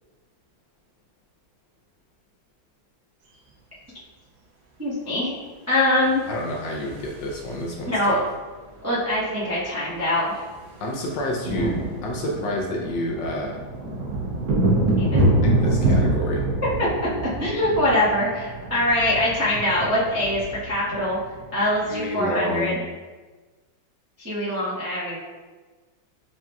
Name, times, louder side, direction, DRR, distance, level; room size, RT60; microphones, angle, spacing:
voice 1, 4.8-5.4 5.7-6.2 7.8-8.1 8.8-10.3 15.0-15.3 17.4-21.2 21.5-22.8 24.2-25.2, left 1 dB, 20° right, -10 dB, 0.3 m, -23 dB
sound 1, 6.2-7.8 9.1-9.2 9.4-9.6 9.9-22.0, right 1 dB, 80° right, 1.6 m, -26 dB
voice 2, 6.3-8.2 10.8-11.7 12.0-13.6 15.4-16.4 21.9-22.7, left 1 dB, 70° left, -1 dB, 1.2 m, -28 dB
6.1 x 2.8 x 2.2 m, 1.3 s
omnidirectional pair, 2.2 m